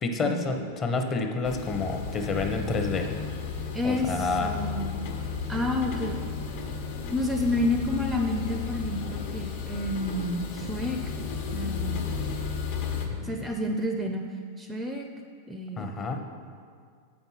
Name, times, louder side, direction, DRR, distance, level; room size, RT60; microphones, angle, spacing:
voice 1, 0.0-3.1 3.8-4.5 13.1-13.3 15.8-16.2, left 3 dB, 25° left, 4 dB, 0.7 m, -29 dB
sound 1, 1.4-13.1, left 5 dB, 60° left, 1.1 m, -33 dB
voice 2, 3.7-5.1 5.5-6.2 7.1-11.0 11.5-12.1 13.2-14.2 14.6-15.1 15.5-15.9, left 1 dB, 10° right, 3 dB, 0.4 m, -29 dB
7.5 x 6.0 x 5.6 m, 2.1 s
supercardioid pair, 155°, 0 cm